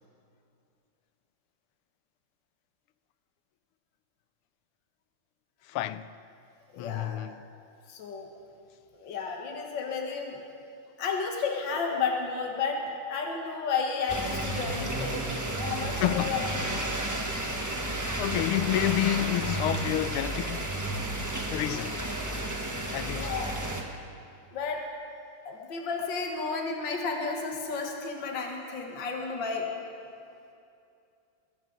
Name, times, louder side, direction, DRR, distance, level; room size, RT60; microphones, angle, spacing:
voice 1, 5.7-6.1 6.8-7.4 16.0-16.4 16.7-17.0 18.2-20.7 21.5-22.0 22.9-23.4, left 14 dB, 85° left, 1.5 m, -29 dB
voice 2, 6.7-7.2 7.9-8.3 8.9-10.4 11.0-12.8 13.1-15.3 15.6-16.6 23.1-23.6 24.5-24.8 25.4-29.7, left 5 dB, 60° left, 2.2 m, -32 dB
sound 1, 14.1-23.8, right 1 dB, 15° right, 0.8 m, -32 dB
21.5 x 16.5 x 4.0 m
omnidirectional pair, 2.4 m